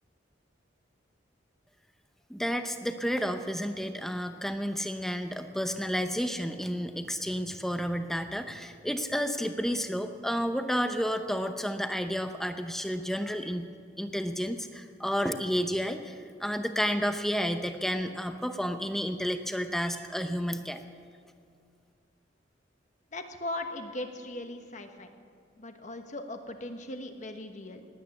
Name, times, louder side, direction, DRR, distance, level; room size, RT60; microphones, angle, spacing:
voice 1, 2.3-13.7 14.0-20.8, equal, ahead, 7 dB, 0.7 m, -31 dB
voice 2, 23.1-25.1 25.6-27.9, left 1 dB, 40° left, 6 dB, 1.2 m, -39 dB
19.5 x 9.3 x 7.2 m, 2.3 s
head